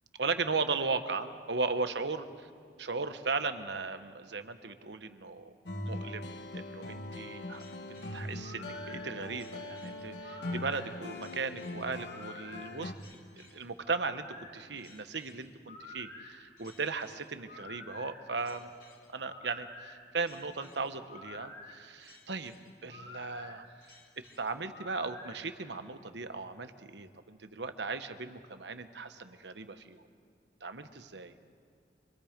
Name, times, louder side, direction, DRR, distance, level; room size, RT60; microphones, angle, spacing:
voice 1, 0.2-2.2 2.8-5.5 5.9-7.7 8.1-12.9 13.4-14.3 14.5-18.7 19.1-22.5 22.8-23.7 24.2-30.0 30.6-31.3, right 4 dB, 70° right, 9 dB, 1.2 m, -37 dB
sound 1, 5.7-12.9, left 1 dB, 70° left, 1.4 m, -41 dB
sound 2, 7.5-25.4, left 3 dB, 50° left, 3.6 m, -50 dB
27.5 x 23.5 x 5.2 m, 2.3 s
head